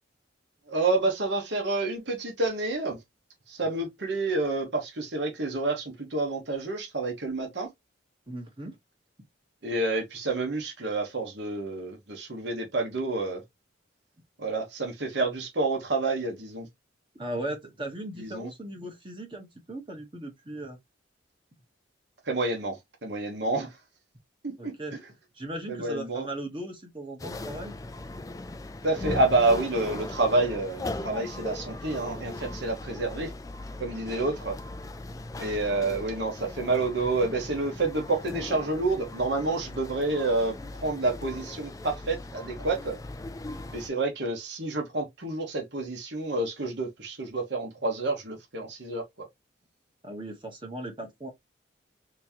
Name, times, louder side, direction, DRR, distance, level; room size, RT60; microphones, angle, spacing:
voice 1, 0.7-3.0 3.5-7.7 9.6-13.4 14.4-16.7 18.2-18.5 22.3-23.8 24.6-25.0 25.7-26.3 28.8-33.3 33.8-34.6 35.4-40.6 40.8-43.0 43.7-49.3, right 2 dB, 60° right, 1.1 m, -29 dB
voice 2, 8.3-8.7 17.2-20.8 24.6-24.9 25.3-27.7 50.0-51.3, right 1 dB, 25° right, 1.1 m, -37 dB
sound 1, 27.2-43.9, left 2 dB, 15° left, 0.3 m, -39 dB
3.6 x 3.0 x 2.8 m
head